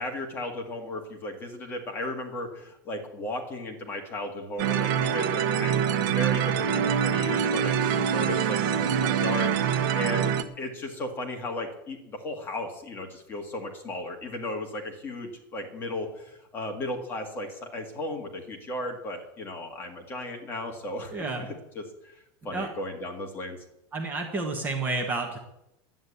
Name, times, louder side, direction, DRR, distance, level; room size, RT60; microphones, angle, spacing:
voice 1, 0.0-23.6, left 1 dB, 15° left, 2 dB, 1.8 m, -35 dB
sound 1, 4.6-10.4, right 8 dB, 60° right, 1.1 m, -25 dB
voice 2, 21.1-21.5 22.5-22.7 23.9-25.4, right 3 dB, 15° right, 2 dB, 1.3 m, -30 dB
11.0 x 9.4 x 8.3 m, 0.82 s
supercardioid pair, 180°, 12 cm